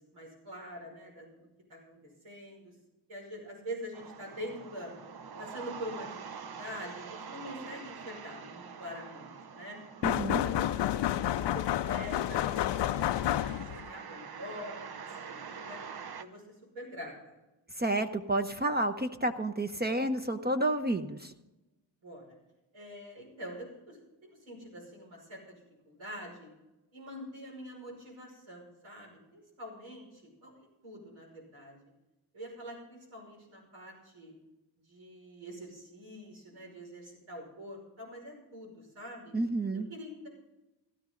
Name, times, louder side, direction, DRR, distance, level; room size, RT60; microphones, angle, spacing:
voice 1, 0.1-2.0 2.2-2.7 3.1-4.9 5.4-6.2 6.4-9.8 10.3-15.8 16.2-16.4 16.7-17.3 22.0-22.4 22.7-25.6 25.8-26.5 26.9-31.8 32.3-34.3 34.9-39.4 39.7-40.3, equal, 90° right, -2 dB, 5.6 m, -45 dB
sound 1, 3.9-16.2, right 6 dB, 55° right, 0.9 m, -46 dB
sound 2, 10.0-13.9, left 12 dB, 65° left, 0.5 m, -30 dB
voice 2, 10.0-10.4 17.8-21.3 39.3-39.9, right 1 dB, 20° right, 7 dB, 0.8 m, -30 dB
16.5 x 12.0 x 3.9 m, 1.0 s
cardioid pair, 65°, 46 cm